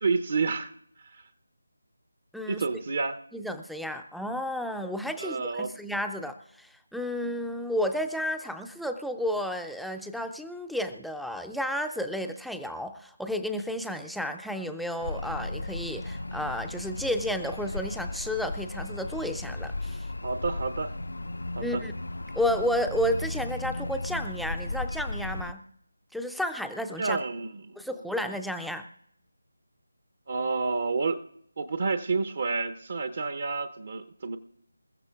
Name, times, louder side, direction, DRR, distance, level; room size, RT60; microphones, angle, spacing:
voice 1, 0.0-0.7 1.0-1.2 2.5-3.2 5.2-5.8 20.2-20.9 21.5-21.8 27.0-27.8 30.3-31.2 31.6-34.4, right 4 dB, 45° right, 11 dB, 0.7 m, -29 dB
voice 2, 2.3-2.6 3.3-20.1 21.6-21.9 22.3-25.6 26.1-27.2 27.8-28.8, equal, ahead, 6 dB, 0.4 m, -32 dB
sound 1, 15.0-25.5, left 2 dB, 70° left, 0.5 m, -35 dB
27.5 x 14.5 x 2.4 m, 0.71 s
figure-of-eight pair, 160°, 0 cm